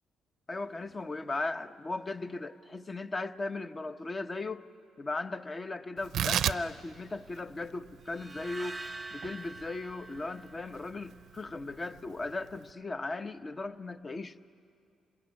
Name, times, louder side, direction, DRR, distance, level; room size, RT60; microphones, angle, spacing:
voice 1, 0.5-4.7 5.0-8.8 9.1-14.4, left 2 dB, 30° left, 0.9 m, -37 dB
Tearing, 6.0-12.7, right 10 dB, 70° right, 0.6 m, -37 dB
sound 1, 8.1-11.3, right 2 dB, 20° right, 0.7 m, -45 dB
27.0 x 19.5 x 9.7 m
cardioid pair, 90°, 0 cm